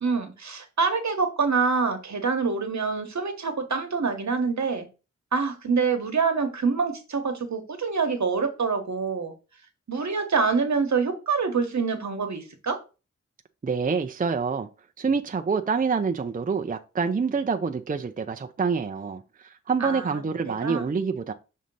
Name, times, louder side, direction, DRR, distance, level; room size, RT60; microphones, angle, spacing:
voice 1, 0.0-4.9 5.3-9.3 9.9-12.8 19.8-20.2 20.5-20.8, right 5 dB, 70° right, 1.1 m, -26 dB
voice 2, 13.6-14.7 15.0-21.3, right 5 dB, 30° right, 0.5 m, -27 dB
6.3 x 2.8 x 5.3 m
wide cardioid pair, 90°, 29 cm